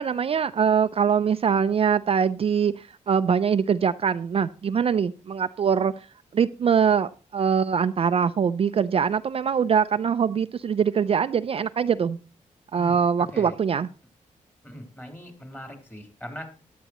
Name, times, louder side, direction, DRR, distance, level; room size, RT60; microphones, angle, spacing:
voice 1, 0.0-5.9 6.3-12.2 12.7-13.9, right 7 dB, 45° right, 12 dB, 0.4 m, -23 dB
voice 2, 14.6-16.5, equal, 15° left, 3 dB, 3.5 m, -40 dB
14.5 x 11.0 x 3.0 m, 0.35 s
cardioid pair, 100°, 13 cm